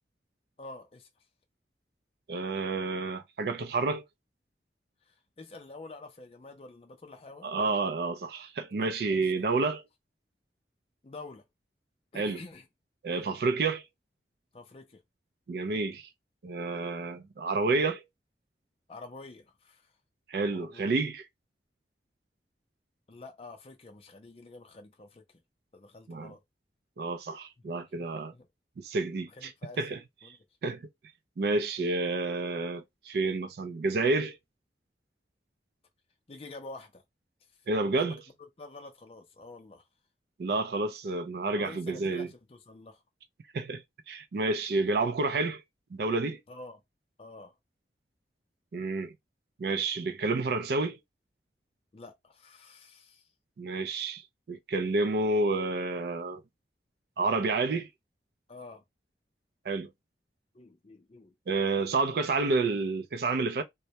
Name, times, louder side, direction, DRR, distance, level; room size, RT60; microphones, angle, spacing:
voice 1, 0.6-1.1 5.1-7.5 8.8-8.9 9.4-9.5 11.0-11.4 12.1-12.7 14.5-15.0 18.9-19.9 20.5-20.9 23.1-25.2 25.7-26.4 28.3-28.5 29.3-30.4 36.3-37.0 38.0-38.2 38.6-39.9 41.5-43.0 46.5-46.8 47.2-47.6 51.9-53.2 58.5-58.8 60.5-61.3, left 3 dB, 35° left, 0.4 m, -48 dB
voice 2, 2.3-4.1 7.4-9.8 12.1-12.4 13.0-13.8 15.5-16.1 16.4-18.0 20.3-21.3 26.1-26.3 27.0-28.3 28.8-29.5 29.8-30.0 30.3-30.4 30.6-30.8 31.4-34.4 37.7-38.2 40.4-42.3 43.5-45.6 45.9-46.4 48.7-49.1 49.6-51.0 53.6-56.4 57.2-57.9 59.7-59.9 61.5-63.6, right 3 dB, 65° right, 0.4 m, -29 dB
2.2 x 2.0 x 2.7 m
head